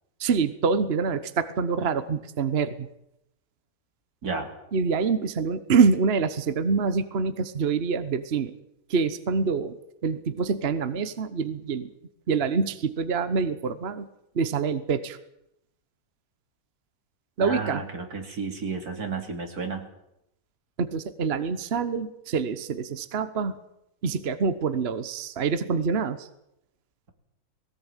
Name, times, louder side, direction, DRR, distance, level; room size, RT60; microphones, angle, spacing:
voice 1, 0.2-2.9 4.7-8.5 8.9-9.8 10.0-11.9 12.3-14.1 14.3-15.2 17.4-17.8 20.8-23.6 24.0-26.3, right 5 dB, 45° right, 13 dB, 1.2 m, -26 dB
voice 2, 17.4-19.9, right 4 dB, 90° right, 5 dB, 3.4 m, -32 dB
20.0 x 17.5 x 9.0 m, 0.82 s
omnidirectional pair, 1.6 m